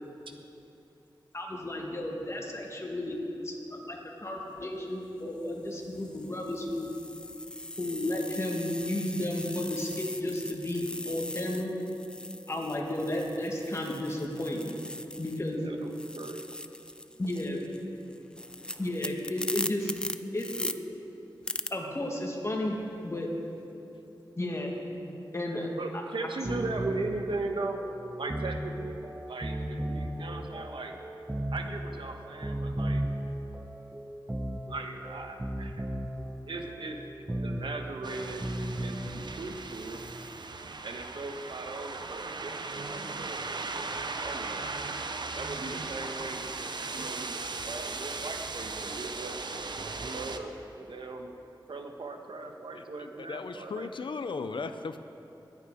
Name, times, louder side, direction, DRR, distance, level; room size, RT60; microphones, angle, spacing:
voice 1, 1.3-3.2 3.4-3.6 3.8-6.9 7.8-11.7 12.5-14.7 15.2-15.6 17.2-17.6 18.8-19.9 20.3-20.7 21.7-22.8 23.0-23.3 24.4-24.7 25.0-25.7, left 1 dB, 35° left, -1 dB, 2.1 m, -33 dB
sound 1, 4.4-4.6 5.4-15.5 15.8-20.7 21.5-21.7, left 1 dB, 10° left, 0.5 m, -40 dB
voice 2, 15.6-16.4 25.8-27.8 28.1-31.0 31.5-33.0 34.7-35.8 36.5-37.0 37.4-38.5 38.8-40.0 40.8-43.9 44.2-44.7 45.3-47.4 47.6-49.4 50.0-51.4 51.7-53.9, right 3 dB, 80° right, 4 dB, 1.2 m, -38 dB
sound 2, 26.4-39.4, right 1 dB, 20° right, 0.9 m, -36 dB
sound 3, 38.0-50.4, right 3 dB, 60° right, 0.7 m, -37 dB
voice 3, 52.8-55.0, left 4 dB, 75° left, 9 dB, 0.6 m, -37 dB
21.0 x 9.2 x 5.0 m, 2.9 s
wide cardioid pair, 95°, 8 cm